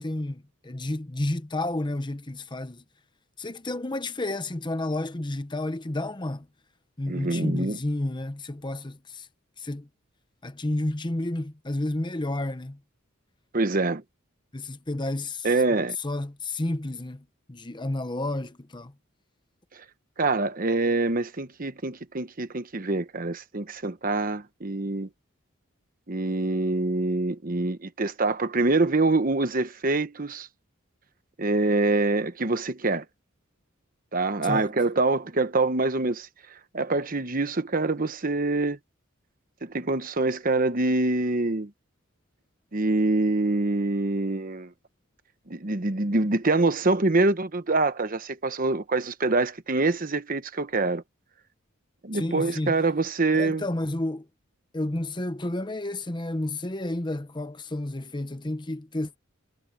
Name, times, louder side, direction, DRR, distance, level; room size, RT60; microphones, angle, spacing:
voice 1, 0.0-2.8 3.4-6.5 7.0-9.3 9.6-9.9 10.4-12.8 14.5-15.5 16.0-18.9 34.4-34.7 52.1-52.7 53.3-54.3 54.7-59.2, left 1 dB, 20° left, 0.9 m, -31 dB
voice 2, 7.1-7.8 13.5-14.0 15.4-16.0 20.2-25.1 26.1-30.5 31.4-33.0 34.1-36.3 36.7-38.8 39.6-41.7 42.7-44.7 45.5-51.0 52.0-53.6, right 2 dB, 40° right, 1.1 m, -25 dB
head